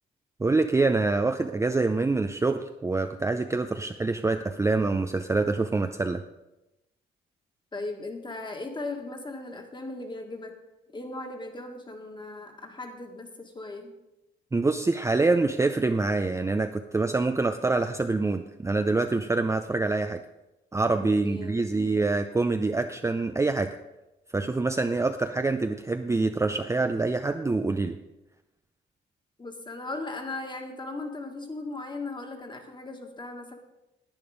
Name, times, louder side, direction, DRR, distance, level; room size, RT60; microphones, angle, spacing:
voice 1, 0.4-6.2 14.5-20.2 20.7-23.8 24.3-27.9, right 3 dB, 15° right, 6 dB, 0.5 m, -25 dB
voice 2, 7.7-10.5 10.9-13.9 21.0-22.0 29.4-33.5, left 2 dB, 25° left, 4 dB, 1.8 m, -38 dB
10.5 x 9.1 x 5.1 m, 0.96 s
cardioid pair, 90°, 20 cm